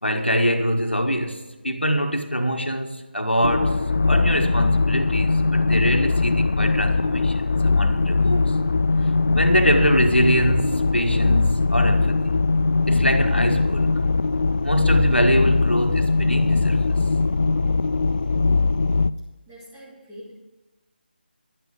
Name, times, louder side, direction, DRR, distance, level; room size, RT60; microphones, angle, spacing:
voice 1, 0.0-8.5 9.3-12.3 12.9-14.0 14.6-16.8, equal, 90° left, 1.5 m, -24 dB
sound 1, 3.4-19.1, left 3 dB, 55° left, 0.4 m, -20 dB
voice 2, 19.5-20.4, equal, 10° right, 3.1 m, -44 dB
11.5 x 8.6 x 6.6 m
figure-of-eight pair, 155°, 6 cm